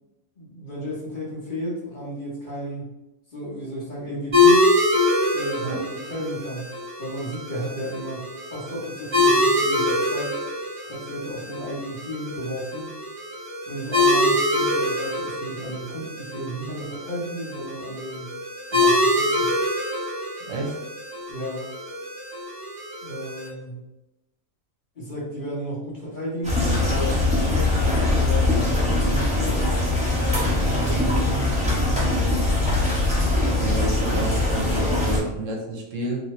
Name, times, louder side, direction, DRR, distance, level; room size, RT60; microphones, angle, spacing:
voice 1, 0.4-2.9 3.3-4.7 5.3-5.8 6.0-6.7 7.0-10.4 10.9-12.9 13.7-18.3 18.7-19.5 21.3-21.7 23.0-23.8 24.9-28.7 29.0-29.7 30.1-31.4, equal, 40° left, -6 dB, 1.1 m, -33 dB
sound 1, 4.3-23.5, left 2 dB, 45° right, 1.3 m, -24 dB
voice 2, 20.4-20.7 33.6-36.3, right 1 dB, 75° right, 0 dB, 1.0 m, -29 dB
sound 2, 26.4-35.2, left 2 dB, 5° right, 0.8 m, -22 dB
2.8 x 2.7 x 3.1 m, 0.94 s
omnidirectional pair, 1.4 m